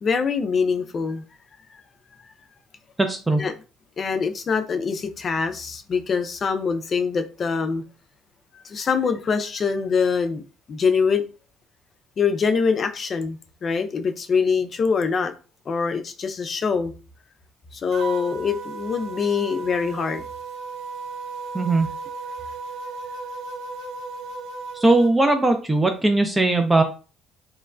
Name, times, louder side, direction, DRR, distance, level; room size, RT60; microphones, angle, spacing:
voice 1, 0.0-1.2 3.4-3.5 4.0-7.8 8.5-10.4 10.7-11.2 12.2-15.3 15.7-16.9 17.7-20.2, left 5 dB, 45° left, 8 dB, 0.4 m, -24 dB
voice 2, 3.0-3.4 21.5-21.9 24.7-26.8, right 2 dB, 20° right, 6 dB, 0.4 m, -19 dB
sound 1, 17.9-25.1, right 4 dB, 75° right, 0.5 m, -35 dB
3.0 x 2.1 x 2.4 m, 0.35 s
hypercardioid pair, 55°, 0 cm